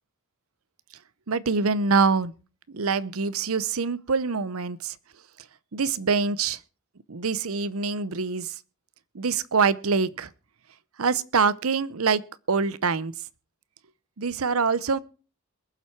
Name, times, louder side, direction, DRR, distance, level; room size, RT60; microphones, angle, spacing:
voice 1, 1.3-2.3 2.7-4.9 5.7-6.6 7.1-8.5 9.1-10.3 11.0-12.2 12.5-13.1 14.2-15.0, right 5 dB, 75° right, 0.7 m, -25 dB
22.0 x 7.4 x 4.5 m
head